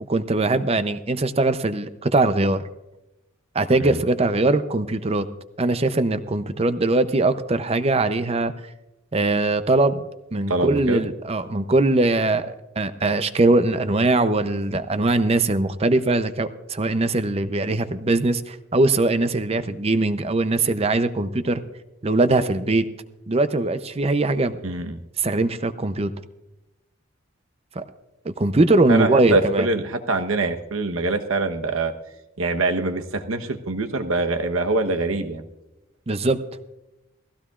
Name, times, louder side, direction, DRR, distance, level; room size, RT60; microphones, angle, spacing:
voice 1, 0.1-2.6 3.5-5.3 5.6-8.5 9.1-10.0 10.3-21.6 22.0-22.9 23.3-24.6 25.2-26.1 27.8-27.9 28.2-29.6 36.1-36.4, right 2 dB, 30° right, 12 dB, 0.6 m, -21 dB
voice 2, 10.5-11.1 24.6-25.0 28.9-31.9 32.4-35.5, right 3 dB, 85° right, 7 dB, 1.1 m, -24 dB
19.0 x 15.5 x 2.4 m, 0.98 s
head